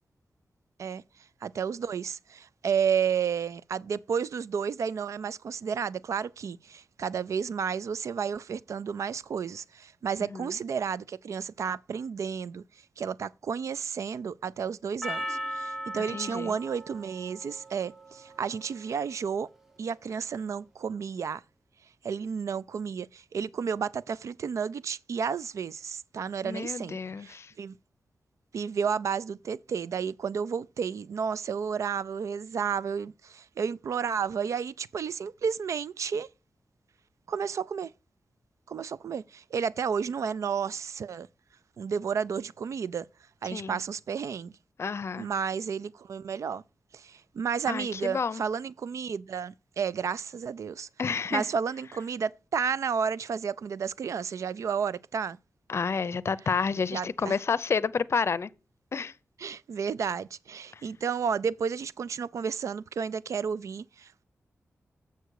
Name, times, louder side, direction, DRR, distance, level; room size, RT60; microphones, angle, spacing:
voice 1, 1.4-12.6 13.0-19.5 19.8-21.4 22.0-27.8 28.5-36.3 37.3-37.9 38.7-41.3 41.8-43.1 43.4-44.5 45.2-46.6 46.9-50.9 51.3-55.4 56.9-57.4 59.4-64.2, right 6 dB, 75° right, 0.4 m, -32 dB
Percussion, 15.0-19.5, equal, 5° right, 1.0 m, -39 dB
voice 2, 16.1-16.5 26.4-27.5 43.5-43.8 44.8-45.3 47.7-48.4 51.0-51.5 55.7-58.5 58.9-59.1 60.7-60.8, left 5 dB, 55° left, 0.6 m, -30 dB
7.9 x 6.6 x 4.7 m
wide cardioid pair, 85°, 5 cm